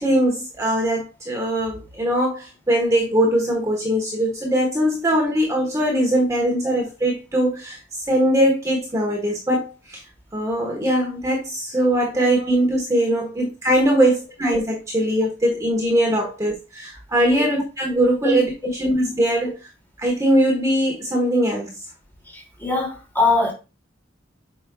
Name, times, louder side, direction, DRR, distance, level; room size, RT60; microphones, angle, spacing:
voice 1, 0.0-10.0 10.3-18.5 18.8-19.5 20.0-21.8, right 1 dB, 15° right, 1.4 m, -21 dB
voice 2, 22.3-23.5, left 3 dB, 10° left, 2.6 m, -22 dB
8.3 x 5.4 x 2.4 m
head